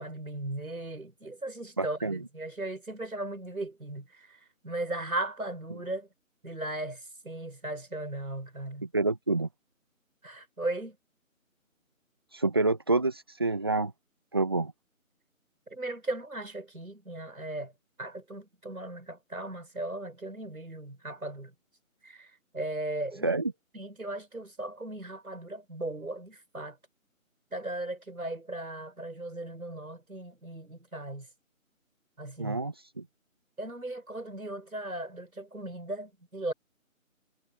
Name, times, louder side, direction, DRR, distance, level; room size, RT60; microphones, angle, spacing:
voice 1, 0.0-6.1 6.4-8.9 10.2-11.0 15.7-17.7 18.0-21.5 22.0-23.3 23.7-26.8 27.5-31.3 32.2-32.6 33.6-36.5, right 2 dB, 85° right, 6.8 m, -37 dB
voice 2, 1.8-2.2 8.8-9.5 12.3-13.9 14.3-14.7 23.2-23.5 32.4-33.0, right 3 dB, 20° right, 1.0 m, -28 dB
figure-of-eight pair, 165°, 42 cm